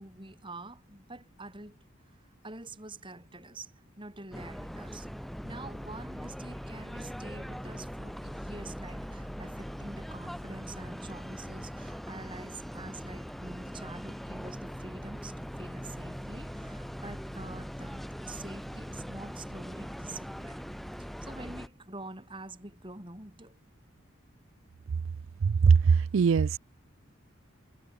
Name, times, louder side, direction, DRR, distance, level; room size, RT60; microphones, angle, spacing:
voice 1, 0.0-1.8 2.4-20.6 21.0-23.6, right 2 dB, 25° right, 4.1 m, -46 dB
sound 1, 4.3-21.7, equal, ahead, 0.7 m, -41 dB
voice 2, 25.4-26.6, right 5 dB, 70° right, 0.4 m, -21 dB
head